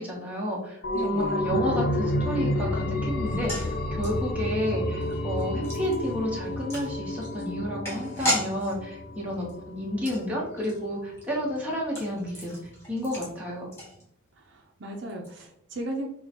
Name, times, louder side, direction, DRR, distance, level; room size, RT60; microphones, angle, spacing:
voice 1, 0.0-12.6 12.9-13.7, equal, 5° right, -4 dB, 1.0 m, -31 dB
sound 1, 0.8-10.2 10.5-10.6, left 1 dB, 45° left, 0.4 m, -30 dB
voice 2, 0.9-1.4 9.3-9.5 14.4-16.1, right 1 dB, 55° right, 1 dB, 0.6 m, -36 dB
sound 2, 3.2-14.5 14.7-14.8 15.1-15.3, left 1 dB, 10° left, 1.3 m, -37 dB
6.3 x 2.3 x 2.9 m, 0.72 s
head